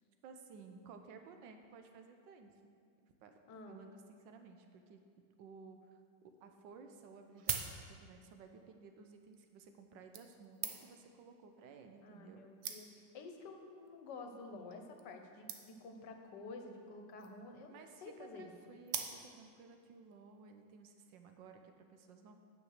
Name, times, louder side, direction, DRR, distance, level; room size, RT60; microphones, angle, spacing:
voice 1, 0.2-2.7 3.0-3.3 3.7-6.0 6.4-12.4 17.7-22.4, right 5 dB, 85° right, 5 dB, 1.4 m, -56 dB
voice 2, 3.5-3.8 12.0-18.5, left 3 dB, 70° left, 4 dB, 1.5 m, -50 dB
sound 1, 6.3-6.4 7.2-8.3 9.2-9.4 10.1-11.1 12.0-12.1 12.3-12.4 12.6-13.2 13.9-14.1 14.4-14.5 14.7-14.8 15.0-15.1 15.5-16.0 17.0-17.5 18.9-19.6 20.1-20.2, right 8 dB, 65° right, 1.2 m, -43 dB
9.4 x 6.2 x 6.4 m, 2.2 s
omnidirectional pair, 2.0 m